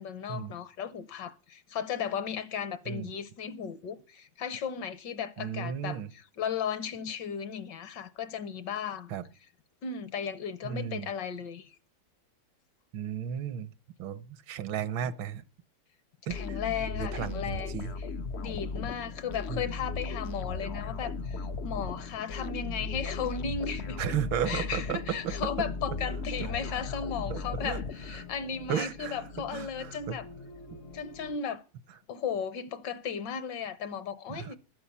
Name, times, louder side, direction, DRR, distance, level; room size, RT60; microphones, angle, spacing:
voice 1, 0.0-9.1 9.8-11.7 16.3-18.1 18.3-24.0 24.5-30.3 30.9-31.6 32.1-34.6, left 7 dB, 70° left, 1.4 m, -35 dB
voice 2, 5.4-6.1 9.1-9.2 10.6-11.1 12.9-13.7 14.0-15.4 16.3-16.4 17.0-17.9 19.5-19.6 24.0-25.2 27.3-27.8 28.7-29.2 29.5-30.2 34.3-34.6, right 8 dB, 80° right, 1.6 m, -34 dB
sound 1, 16.3-28.5, left 4 dB, 85° left, 0.5 m, -37 dB
sound 2, 18.4-31.4, left 5 dB, 50° left, 0.8 m, -47 dB
12.5 x 9.9 x 7.2 m
omnidirectional pair, 2.2 m